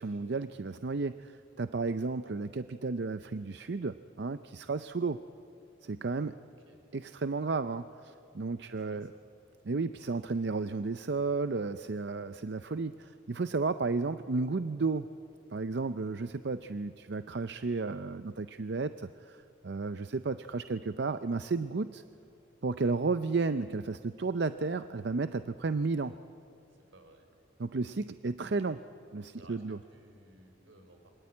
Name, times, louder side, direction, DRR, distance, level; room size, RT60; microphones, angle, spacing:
voice 1, 0.0-5.2 5.8-6.3 6.9-9.1 9.6-15.1 15.5-22.0 22.6-26.2 27.6-28.8 29.1-29.8, right 4 dB, 60° right, 11 dB, 0.5 m, -33 dB
voice 2, 6.4-6.8 8.6-9.2 26.7-27.3 29.3-31.1, right 1 dB, 80° right, 5 dB, 4.7 m, -59 dB
26.5 x 24.0 x 8.6 m, 2.8 s
head